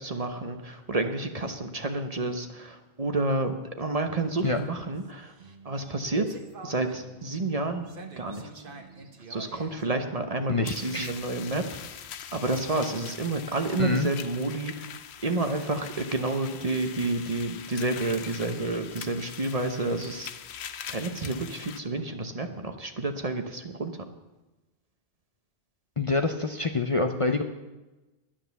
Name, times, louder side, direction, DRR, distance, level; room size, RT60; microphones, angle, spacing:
voice 1, 0.0-5.3 5.6-6.3 6.6-7.9 8.2-8.5 9.3-11.6 12.3-14.9 15.2-20.3 20.9-23.9, right 2 dB, 35° right, 6 dB, 1.0 m, -30 dB
sound 1, 4.2-11.0, right 4 dB, 55° right, 1.3 m, -47 dB
voice 2, 10.5-11.1 13.8-14.1 26.0-27.4, left 3 dB, 35° left, 5 dB, 0.7 m, -26 dB
sound 2, 10.6-21.8, left 8 dB, 80° left, 0.9 m, -42 dB
11.5 x 10.5 x 7.0 m, 1.1 s
omnidirectional pair, 1.1 m